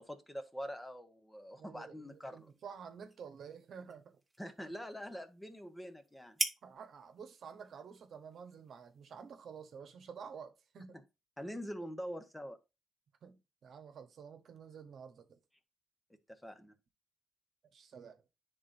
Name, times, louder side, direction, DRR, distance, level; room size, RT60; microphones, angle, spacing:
voice 1, 0.0-2.5 4.4-6.4 11.4-12.6 16.3-16.7, equal, 10° left, 1.2 m, -44 dB
voice 2, 1.5-4.2 6.6-11.0 13.2-15.4 17.7-18.2, right 6 dB, 65° right, 1.1 m, -50 dB
sound 1, 2.1-9.8, right 2 dB, 15° right, 1.3 m, -46 dB
9.9 x 3.8 x 2.7 m
cardioid pair, 70°, 0 cm